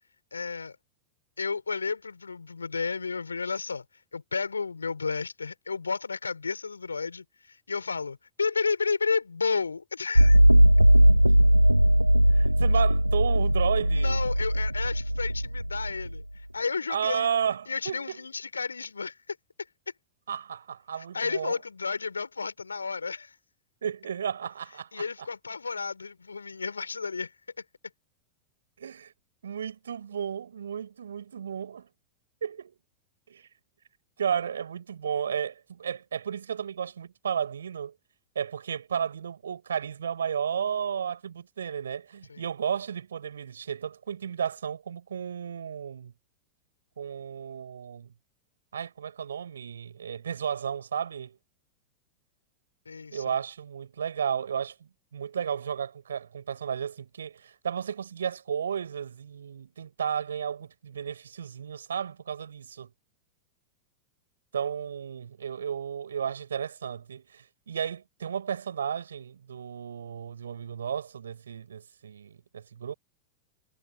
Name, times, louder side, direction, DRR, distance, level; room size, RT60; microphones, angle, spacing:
voice 1, 0.3-0.8 1.4-3.8 4.1-10.4 13.9-16.2 16.5-17.3 17.7-19.4 21.1-23.3 24.9-27.3 42.3-42.4 52.8-53.4, left 4 dB, 75° left, 4.8 m, -32 dB
sound 1, 10.2-16.2, equal, 90° right, 0.7 m, -19 dB
voice 2, 12.3-14.2 16.9-18.2 20.3-21.6 23.8-25.1 28.8-29.1 29.4-31.9 32.4-32.7 33.3-33.5 34.2-38.0 38.4-46.1 47.0-48.1 48.7-51.4 53.1-62.9 64.5-72.9, right 8 dB, 70° right, 5.1 m, -33 dB
figure-of-eight pair, 90°, 0 cm